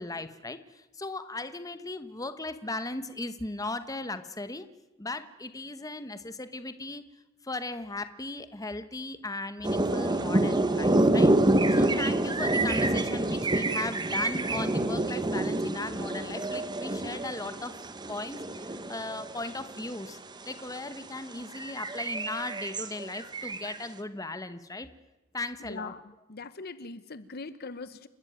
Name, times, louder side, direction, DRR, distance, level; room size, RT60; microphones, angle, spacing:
voice 1, 0.0-4.7 5.0-7.0 7.4-17.8 18.1-20.2 20.4-24.9 25.3-25.9, left 2 dB, 15° left, 11 dB, 1.0 m, -37 dB
sound 1, 9.6-20.1 20.6-20.8 21.2-23.8, right 1 dB, 20° right, 1.1 m, -27 dB
voice 2, 25.6-26.0 26.3-28.1, left 3 dB, 45° left, 14 dB, 0.9 m, -41 dB
29.0 x 12.5 x 9.3 m, 1.0 s
head